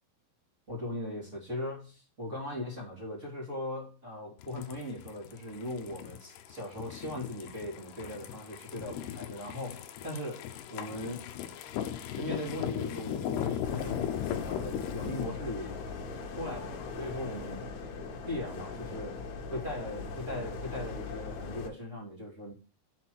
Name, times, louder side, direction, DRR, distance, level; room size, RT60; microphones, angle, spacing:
voice 1, 0.7-11.3 12.1-14.2 14.4-15.7 16.3-17.6 18.2-19.2 19.5-22.5, left 1 dB, 25° right, 1.7 m, -39 dB
sound 1, 4.4-15.2, left 10 dB, 85° left, 2.3 m, -38 dB
sound 2, 13.6-21.7, left 4 dB, 65° left, 2.6 m, -40 dB
7.7 x 4.6 x 6.1 m
omnidirectional pair, 5.8 m